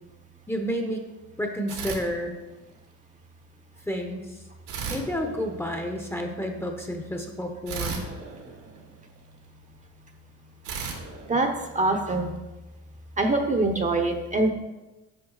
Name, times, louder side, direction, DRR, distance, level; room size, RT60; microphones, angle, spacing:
voice 1, 0.5-1.1 1.4-2.3 3.9-4.4 4.9-8.0, equal, 10° left, 3 dB, 0.8 m, -30 dB
sound 1, 1.7-2.8 4.7-6.1 7.7-9.4 10.6-12.2, right 5 dB, 75° right, 1.7 m, -36 dB
voice 2, 11.3-12.4 13.2-14.5, right 2 dB, 25° right, 4 dB, 0.8 m, -24 dB
9.0 x 5.3 x 3.9 m, 1.1 s
cardioid pair, 110°, 32 cm